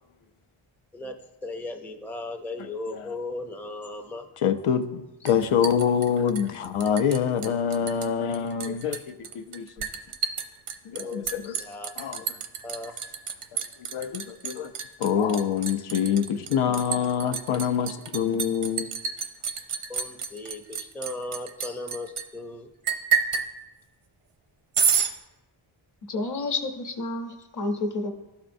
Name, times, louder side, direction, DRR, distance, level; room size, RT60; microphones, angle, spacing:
voice 1, 1.4-4.3 5.2-5.4 11.0-11.9 12.6-12.9 15.8-15.9 19.9-22.7 26.3-26.5, left 2 dB, 5° left, 4 dB, 0.4 m, -37 dB
voice 2, 4.4-9.0 9.3-9.6 10.9-11.5 12.0-12.2 13.9-14.7 15.0-18.9, left 8 dB, 85° left, 9 dB, 0.6 m, -25 dB
Liquid, 5.3-7.2 7.4-8.1 8.3-22.2 22.9-23.5 24.7-25.1, right 7 dB, 85° right, 0.7 m, -29 dB
voice 3, 26.1-28.1, left 2 dB, 40° left, 5 dB, 0.8 m, -30 dB
12.0 x 4.3 x 2.6 m, 1.0 s
wide cardioid pair, 110°, 49 cm